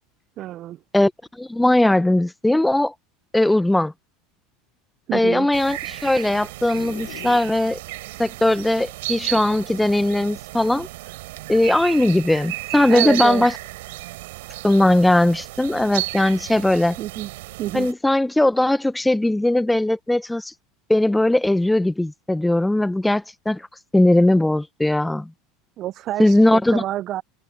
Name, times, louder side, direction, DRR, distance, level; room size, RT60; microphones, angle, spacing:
voice 1, 0.4-0.8 5.1-5.5 12.9-13.5 17.0-17.3 17.6-17.9 25.8-27.2, right 13 dB, 50° right, 0.8 m, -28 dB
voice 2, 1.4-2.9 3.3-3.9 5.1-7.8 8.2-10.9 11.5-13.5 14.6-17.0 17.7-20.5 20.9-23.6 23.9-25.3 26.2-26.8, left 1 dB, 5° left, 1.3 m, -19 dB
sound 1, 5.5-17.9, right 19 dB, 70° right, 5.6 m, -33 dB
sound 2, 6.8-8.0, left 27 dB, 65° left, 1.6 m, -40 dB
hypercardioid pair, 80°, 0 cm